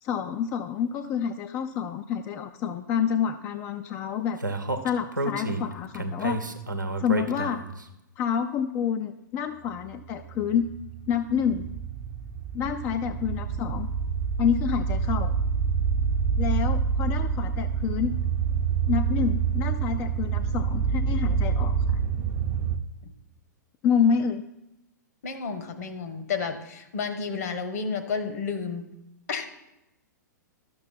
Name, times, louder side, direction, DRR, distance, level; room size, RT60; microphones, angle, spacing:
voice 1, 0.0-4.4 4.8-6.4 7.0-7.6 8.2-10.7 11.1-11.7 12.5-13.9 14.4-15.3 16.4-18.1 18.9-22.0 23.8-24.4, left 8 dB, 25° left, 7 dB, 0.4 m, -28 dB
Speech, 4.4-7.8, right 2 dB, 85° right, 0.9 m, -30 dB
sound 1, 10.0-22.8, right 6 dB, 35° right, 0.7 m, -27 dB
voice 2, 25.2-28.9 29.3-29.5, left 5 dB, 55° left, 9 dB, 1.1 m, -31 dB
12.0 x 6.9 x 4.2 m, 0.91 s
figure-of-eight pair, 105°, 10 cm